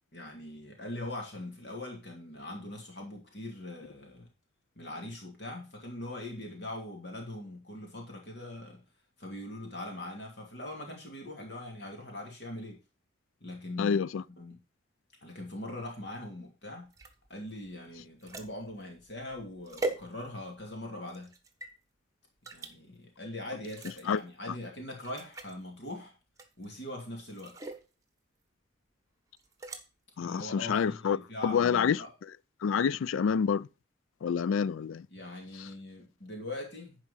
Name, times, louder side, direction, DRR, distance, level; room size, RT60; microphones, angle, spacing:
voice 1, 0.1-4.3 4.8-8.8 9.2-12.8 13.4-14.0 14.3-14.6 15.2-16.9 17.3-21.3 22.5-26.1 26.6-27.6 30.2-32.1 35.1-37.0, left 1 dB, 55° left, 2.7 m, -41 dB
voice 2, 13.8-14.2 24.1-24.2 30.2-31.2 31.4-32.0 32.6-33.7 34.2-35.1, left 6 dB, 85° left, 0.4 m, -27 dB
sound 1, 16.9-20.6 21.1-21.7 22.4-22.7 23.6-24.2 24.6-24.7 25.0-25.6 26.4-26.8 27.3-27.9 29.4-29.8, right 2 dB, 15° right, 1.1 m, -41 dB
11.0 x 4.9 x 5.5 m
head